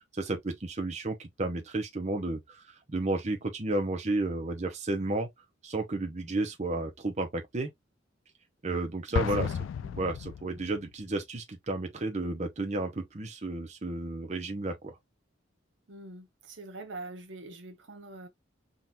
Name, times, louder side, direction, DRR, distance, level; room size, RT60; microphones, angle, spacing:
voice 1, 0.1-5.3 5.6-7.7 8.6-9.5 9.9-15.0, right 2 dB, 35° right, 0.8 m, -32 dB
Explosion, 9.1-10.9, left 7 dB, 85° left, 0.3 m, -33 dB
voice 2, 9.1-9.9 15.9-18.3, right 2 dB, 70° right, 1.0 m, -45 dB
3.8 x 2.4 x 4.2 m
head